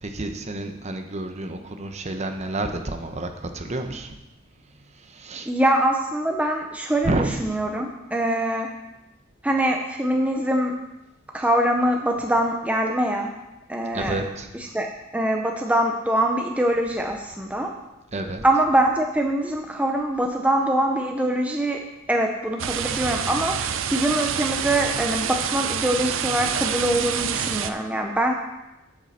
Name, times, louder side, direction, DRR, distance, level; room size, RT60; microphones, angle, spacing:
voice 1, 0.0-4.2 4.6-5.5 7.0-7.4 13.9-14.5 18.1-18.4, right 2 dB, 35° right, 6 dB, 0.8 m, -30 dB
voice 2, 5.5-8.7 9.4-10.8 11.3-13.3 13.7-14.2 14.7-14.9 15.1-17.7 18.4-21.8 22.1-28.3, right 1 dB, 5° right, 2 dB, 0.6 m, -23 dB
sound 1, 22.6-27.7, right 8 dB, 75° right, 0.5 m, -27 dB
8.7 x 7.7 x 4.2 m, 0.97 s
head